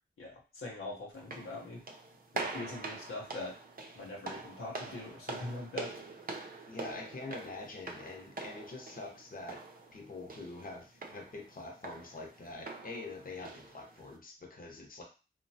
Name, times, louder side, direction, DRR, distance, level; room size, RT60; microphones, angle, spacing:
voice 1, 0.2-1.8 2.3-3.5 4.0-5.9, left 2 dB, 90° left, -2 dB, 0.8 m, -42 dB
sound 1, 1.1-14.2, right 3 dB, 45° right, 0.6 m, -45 dB
voice 2, 6.7-9.6 9.9-15.0, left 3 dB, 45° left, 1 dB, 0.8 m, -45 dB
3.0 x 2.1 x 2.7 m, 0.33 s
cardioid pair, 40°, 21 cm